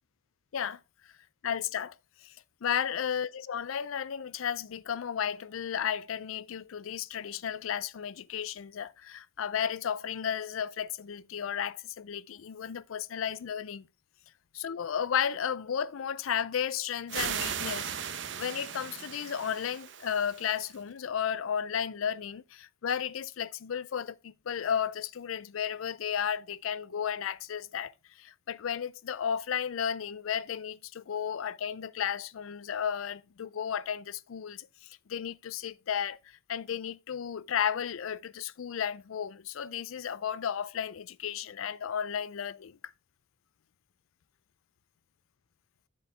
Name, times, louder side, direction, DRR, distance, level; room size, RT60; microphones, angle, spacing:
voice 1, 1.4-2.0 2.2-2.3 2.6-13.9 14.5-27.9 28.2-34.7 35.1-42.8, left 8 dB, 85° left, 0.4 m, -33 dB
sound 1, 17.1-20.8, right 8 dB, 65° right, 0.8 m, -37 dB
7.7 x 7.2 x 3.3 m
head